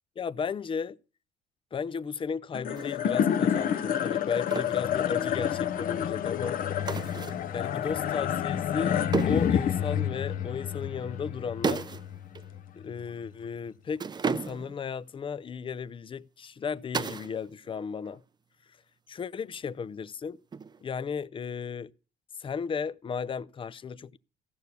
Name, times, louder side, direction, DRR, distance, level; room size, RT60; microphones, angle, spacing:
voice 1, 0.2-1.0 1.7-6.6 7.5-11.8 12.8-18.2 19.1-20.4 20.8-21.9 22.4-24.2, left 6 dB, 30° left, 0.6 m, -35 dB
sound 1, 2.5-13.0, left 9 dB, 55° left, 1.0 m, -29 dB
sound 2, 2.8-3.0 4.5-4.8 6.9-7.5 9.1-9.6 11.6-12.1 12.4-12.5 14.0-14.8 16.9-17.4 17.7-18.2 20.5-21.0, right 5 dB, 25° right, 0.6 m, -32 dB
15.5 x 6.8 x 8.2 m
cardioid pair, 110°, 17 cm